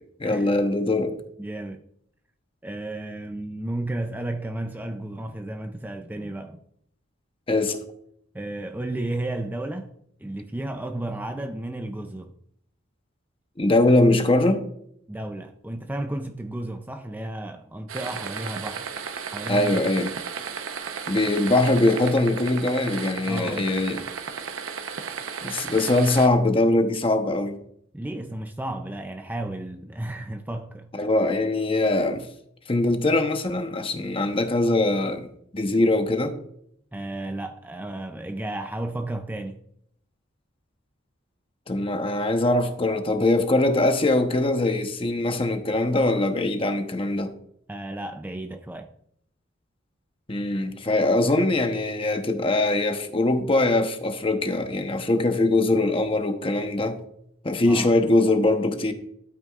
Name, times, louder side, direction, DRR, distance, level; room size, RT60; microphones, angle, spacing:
voice 1, 0.2-1.2 7.5-7.8 13.6-14.7 19.5-20.1 21.1-24.0 25.4-27.6 30.9-32.3 32.7-36.3 41.7-47.3 50.3-57.0 57.4-58.9, left 2 dB, 25° left, 0.9 m, -22 dB
voice 2, 1.4-1.8 2.6-6.6 8.3-9.9 10.2-12.3 15.1-18.9 19.3-19.8 23.3-24.1 27.9-30.9 36.9-39.6 47.7-48.9 57.7-57.9, right 1 dB, 10° right, 0.4 m, -33 dB
sound 1, 17.9-26.3, right 6 dB, 85° right, 0.9 m, -34 dB
12.5 x 8.4 x 2.4 m
head